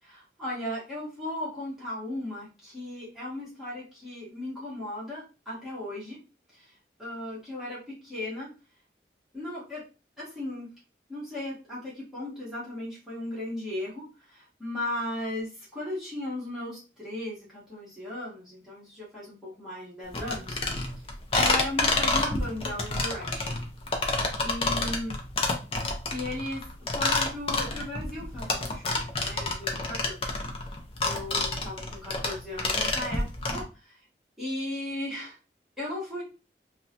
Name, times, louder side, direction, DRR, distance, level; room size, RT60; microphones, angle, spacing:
voice 1, 0.0-6.2 6.5-8.5 9.3-9.8 10.2-10.7 11.1-20.6 21.3-23.6 24.4-25.1 26.1-26.7 26.9-30.4 31.0-34.1 34.4-35.4 35.8-36.2, left 1 dB, 5° right, -9 dB, 1.3 m, -36 dB
sound 1, 20.1-33.6, left 2 dB, 30° left, 0.5 m, -28 dB
3.4 x 2.2 x 2.7 m, 0.32 s
head